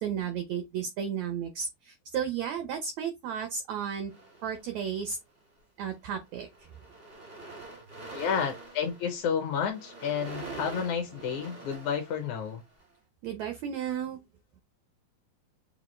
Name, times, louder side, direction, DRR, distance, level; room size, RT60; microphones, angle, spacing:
voice 1, 0.0-4.1 4.4-5.2 5.8-6.5 13.2-14.2, right 7 dB, 85° right, 1.6 m, -33 dB
sound 1, 4.1-5.1 5.8-6.1 6.3-12.8, right 2 dB, 50° right, 0.6 m, -45 dB
voice 2, 8.1-12.6, left 7 dB, 70° left, 1.9 m, -31 dB
6.6 x 2.3 x 3.1 m
omnidirectional pair, 4.1 m